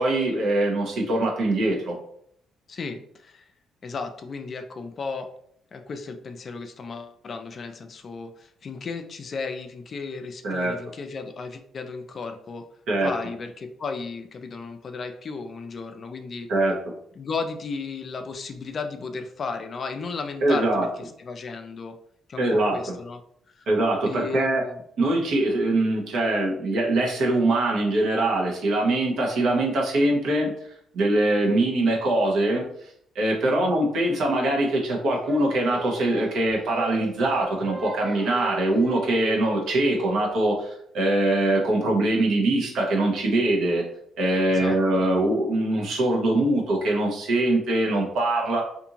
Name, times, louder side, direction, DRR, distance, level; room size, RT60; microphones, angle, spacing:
voice 1, 0.0-1.9 10.4-10.8 12.9-13.1 16.5-16.8 20.4-20.9 22.4-22.8 23.7-24.6 25.0-30.5 30.9-32.9 33.1-43.8 44.2-48.6, right 1 dB, 75° right, -1 dB, 0.9 m, -23 dB
voice 2, 2.7-3.5 3.8-5.3 5.7-12.7 13.0-16.5 17.2-22.0 22.3-23.2 23.5-23.7 24.0-24.8 33.6-33.7 44.5-44.8, left 4 dB, 45° left, 7 dB, 0.4 m, -35 dB
Singing, 35.3-40.5, right 3 dB, 35° right, 0.4 m, -37 dB
2.6 x 2.6 x 2.8 m, 0.68 s
cardioid pair, 90°, 0 cm